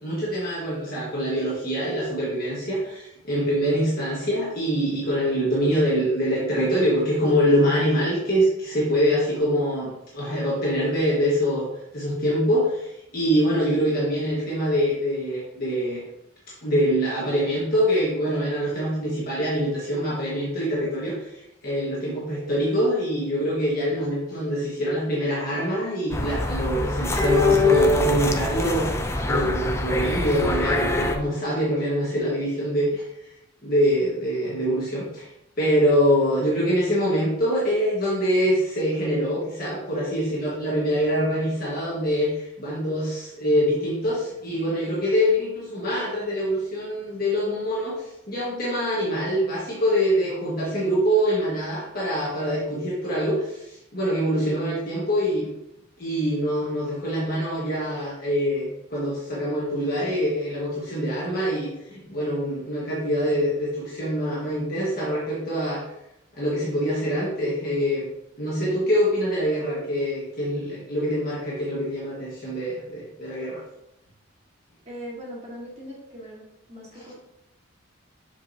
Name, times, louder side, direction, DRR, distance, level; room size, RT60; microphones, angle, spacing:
voice 1, 0.0-11.7 11.9-16.0 16.6-29.0 29.3-33.3 33.6-35.3 35.6-55.5 56.0-65.9 66.3-68.1 68.4-73.6, equal, 45° left, -7 dB, 1.5 m, -24 dB
sound 1, 26.1-31.1, left 2 dB, 15° left, 0.4 m, -23 dB
voice 2, 74.8-77.1, equal, 30° right, -5 dB, 1.7 m, -40 dB
7.0 x 5.1 x 2.8 m, 0.86 s
head